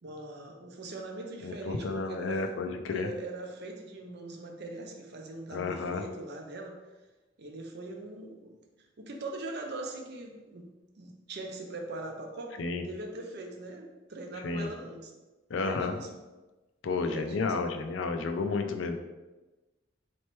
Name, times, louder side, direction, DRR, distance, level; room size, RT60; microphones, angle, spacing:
voice 1, 0.0-2.4 2.9-6.8 7.4-8.5 9.0-10.7 11.0-15.1 15.5-16.1 17.0-17.7, right 2 dB, 60° right, 2 dB, 0.6 m, -41 dB
voice 2, 1.4-3.1 5.5-6.0 12.6-12.8 14.4-14.7 15.5-15.9 16.8-19.0, left 4 dB, 70° left, 6 dB, 0.4 m, -31 dB
4.2 x 3.1 x 3.0 m, 1.1 s
head